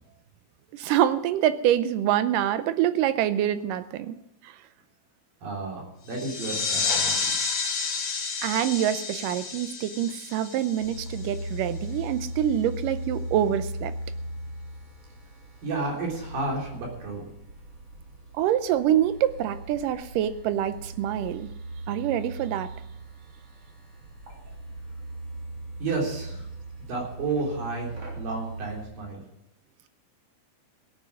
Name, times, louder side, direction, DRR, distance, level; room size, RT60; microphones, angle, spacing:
voice 1, 0.7-4.2 4.4-4.5 8.4-13.9 18.4-21.5 21.9-22.7, right 11 dB, 80° right, 12 dB, 2.0 m, -25 dB
voice 2, 5.4-7.3 15.6-17.3 25.8-26.5 26.8-29.2, right 3 dB, 65° right, -2 dB, 5.2 m, -32 dB
sound 1, 6.1-11.4, left 5 dB, 80° left, 0.9 m, -30 dB
sound 2, 10.8-28.8, right 1 dB, 40° right, 4.2 m, -38 dB
17.0 x 8.7 x 6.3 m, 0.82 s
omnidirectional pair, 4.4 m